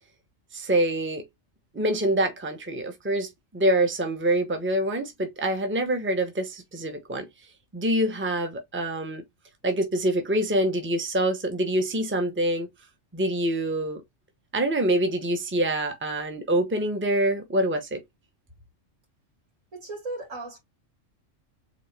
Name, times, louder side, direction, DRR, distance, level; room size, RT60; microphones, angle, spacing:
voice 1, 0.5-1.2 1.7-7.3 7.7-9.2 9.6-12.7 13.1-14.0 14.5-18.0, right 1 dB, 10° right, 0.9 m, -25 dB
voice 2, 19.7-20.6, right 2 dB, 85° right, 3.1 m, -36 dB
4.2 x 3.6 x 3.3 m
omnidirectional pair, 1.3 m